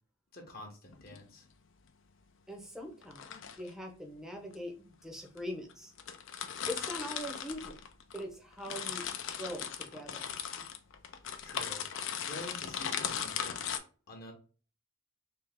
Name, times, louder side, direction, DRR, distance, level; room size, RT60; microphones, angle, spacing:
voice 1, 0.3-1.5 11.4-11.8 12.2-13.6 14.1-14.3, left 1 dB, 45° left, 2 dB, 0.9 m, -47 dB
sound 1, 0.9-1.2 3.0-3.7 4.5-4.6 5.4-5.5 5.7-5.8 6.0-8.2 8.5-13.8, left 8 dB, 60° left, 0.5 m, -38 dB
voice 2, 2.5-5.9 6.7-7.8 8.1-9.1 9.4-10.2, equal, ahead, 2 dB, 0.7 m, -42 dB
3.4 x 3.0 x 3.4 m, 0.38 s
head